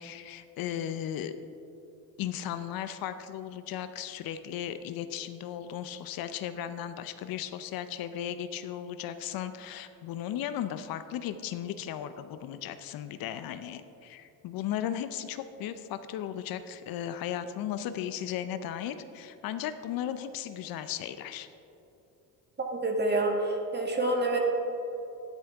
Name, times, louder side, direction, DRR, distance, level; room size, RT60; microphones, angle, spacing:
voice 1, 0.0-1.4 2.2-21.5, left 10 dB, 60° left, 11 dB, 0.6 m, -36 dB
voice 2, 22.7-24.4, right 2 dB, 25° right, 2 dB, 1.7 m, -27 dB
11.0 x 10.0 x 3.5 m, 2.9 s
supercardioid pair, 85°, 39 cm